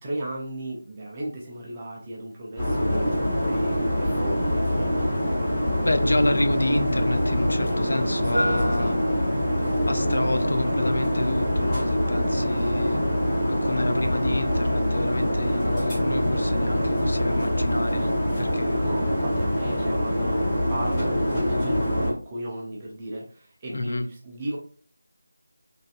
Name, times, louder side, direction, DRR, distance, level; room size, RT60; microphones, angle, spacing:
voice 1, 0.0-3.1 3.4-5.4 8.2-9.0 18.7-24.6, right 1 dB, 20° right, -2 dB, 0.6 m, -34 dB
sound 1, 2.6-22.1, equal, 15° left, 1.3 m, -24 dB
voice 2, 5.8-9.0 9.9-13.0 13.5-18.1 18.4-18.8 23.7-24.1, left 1 dB, 65° left, 8 dB, 0.4 m, -28 dB
3.2 x 2.5 x 2.4 m, 0.41 s
figure-of-eight pair, 165°, 0 cm